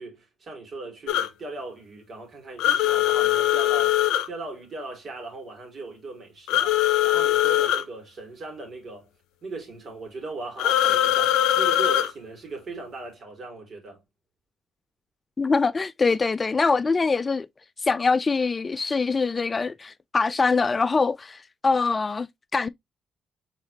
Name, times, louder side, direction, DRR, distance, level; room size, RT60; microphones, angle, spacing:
voice 1, 0.0-9.1 9.4-14.0, right 3 dB, 55° right, 2.7 m, -38 dB
sound 1, 1.1-1.3 2.6-4.3 6.5-7.8 10.6-12.1, left 12 dB, 90° left, 0.6 m, -21 dB
voice 2, 15.4-17.5 17.8-22.7, left 4 dB, 35° left, 0.3 m, -23 dB
4.8 x 4.0 x 2.7 m
supercardioid pair, 70°, 0 cm